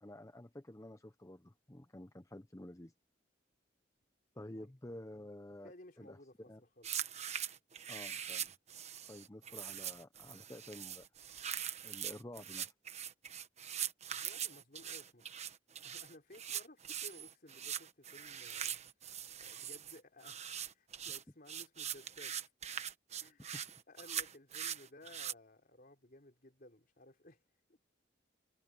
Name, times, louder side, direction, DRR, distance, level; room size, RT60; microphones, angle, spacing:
voice 1, 0.0-2.9 4.3-5.7 6.0-6.2 6.5-6.6 7.9-8.5 9.1-11.0 11.8-12.7 23.5-23.6, left 1 dB, 20° left, 0.7 m, -50 dB
voice 2, 5.6-6.9 14.1-15.4 15.8-18.8 19.4-22.5 23.2-23.5 23.9-27.4 27.7-27.8, left 1 dB, 50° left, 3.9 m, -58 dB
sound 1, 6.8-25.3, right 9 dB, 40° right, 1.2 m, -42 dB
head